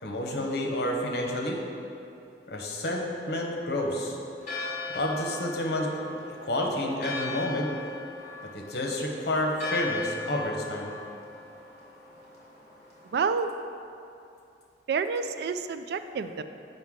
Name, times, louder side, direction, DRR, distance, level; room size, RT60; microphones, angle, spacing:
voice 1, 0.0-1.6 2.5-4.2 4.9-6.1 6.4-7.7 8.5-10.9, left 1 dB, 65° left, 1 dB, 0.9 m, -29 dB
Church bell, 4.4-13.3, left 3 dB, 40° left, 1.5 m, -39 dB
voice 2, 13.1-13.5 14.9-16.4, right 5 dB, 60° right, 10 dB, 0.3 m, -28 dB
7.8 x 5.3 x 3.6 m, 2.7 s
head